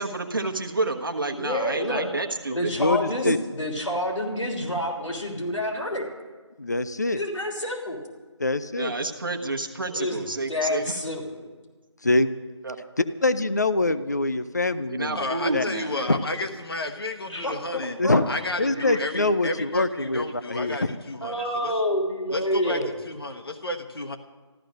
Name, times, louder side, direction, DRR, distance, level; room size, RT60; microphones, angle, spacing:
voice 1, 0.0-2.6 3.2-3.3 8.7-11.0 12.6-12.8 14.9-15.9, right 2 dB, 45° right, 4 dB, 1.2 m, -29 dB
voice 2, 1.3-2.2 2.5-6.1 7.2-8.0 9.9-10.2 10.5-11.5 17.3-18.2 18.7-19.0 21.2-23.0, left 1 dB, 90° left, 2 dB, 3.3 m, -28 dB
voice 3, 2.8-3.4 6.6-7.2 8.4-8.9 12.0-12.4 13.0-15.3 15.5-15.6 16.1-16.2 18.0-18.3 18.6-20.9, left 2 dB, 35° left, 13 dB, 0.5 m, -24 dB
voice 4, 15.1-18.0 18.3-21.7 22.3-22.8 23.1-24.2, left 2 dB, 50° left, 6 dB, 1.2 m, -32 dB
14.0 x 13.0 x 6.4 m, 1.3 s
figure-of-eight pair, 175°, 15 cm